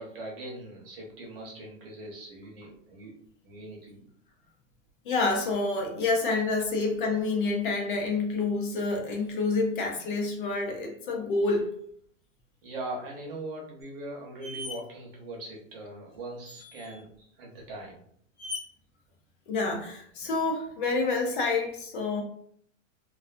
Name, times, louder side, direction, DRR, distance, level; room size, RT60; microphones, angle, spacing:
voice 1, 0.0-3.1 3.4-4.0 6.2-6.4 11.5-11.7 12.6-18.0, right 1 dB, 50° right, -1 dB, 0.8 m, -41 dB
voice 2, 5.1-11.7 19.5-22.2, left 3 dB, 45° left, 1 dB, 0.5 m, -28 dB
sound 1, 13.8-13.9 14.4-14.8 16.5-17.0 18.4-18.6, left 2 dB, 85° left, 1.0 m, -39 dB
2.4 x 2.3 x 2.4 m, 0.65 s
supercardioid pair, 165°, 38 cm